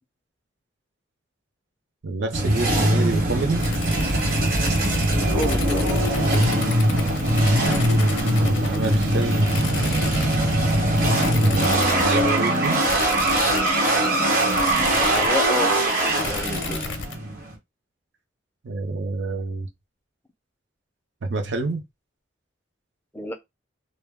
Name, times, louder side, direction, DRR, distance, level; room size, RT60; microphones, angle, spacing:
voice 1, 2.0-3.7 8.3-10.3 11.3-12.8 18.6-19.7 21.2-21.8, right 3 dB, 70° right, 0.5 m, -27 dB
sound 1, 2.3-17.5, right 1 dB, 45° right, 0.9 m, -21 dB
sound 2, 3.6-17.1, left 4 dB, 75° left, 0.5 m, -34 dB
voice 2, 5.3-6.0 15.0-16.8 23.1-23.3, left 1 dB, 10° left, 0.3 m, -30 dB
2.2 x 2.0 x 3.3 m
head